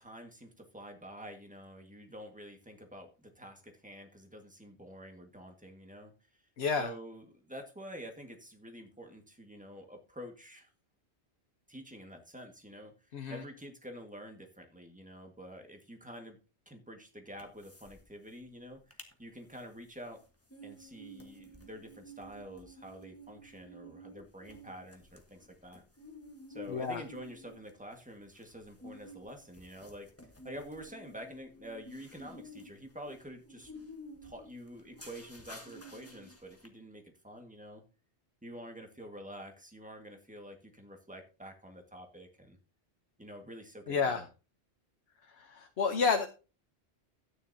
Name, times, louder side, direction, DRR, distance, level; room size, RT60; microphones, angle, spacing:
voice 1, 0.0-6.1 6.8-10.7 11.7-12.9 13.3-16.4 16.7-20.2 20.6-25.8 26.5-30.1 30.4-33.7 34.2-37.8 38.4-42.6 43.2-44.3, equal, 5° right, 4 dB, 1.7 m, -48 dB
voice 2, 6.6-6.9 13.1-13.4 26.7-27.0 43.9-44.2 45.3-46.3, left 5 dB, 70° left, 5 dB, 1.2 m, -30 dB
sound 1, 17.4-18.0 18.3-18.4 18.7-19.1 19.5-36.7, equal, 15° left, 1.4 m, -52 dB
13.0 x 9.6 x 2.8 m, 0.32 s
omnidirectional pair, 1.1 m